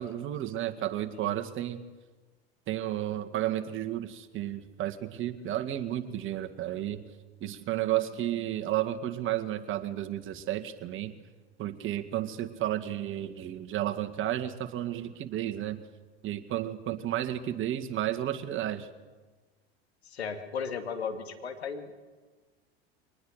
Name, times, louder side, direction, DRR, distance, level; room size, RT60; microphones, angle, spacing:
voice 1, 0.0-1.8 2.7-7.1 7.4-11.1 11.6-15.8 16.2-18.9, right 12 dB, 40° right, 6 dB, 1.9 m, -32 dB
voice 2, 20.0-21.9, left 6 dB, 80° left, 6 dB, 2.6 m, -36 dB
23.0 x 19.5 x 6.7 m, 1.3 s
hypercardioid pair, 85°, 31 cm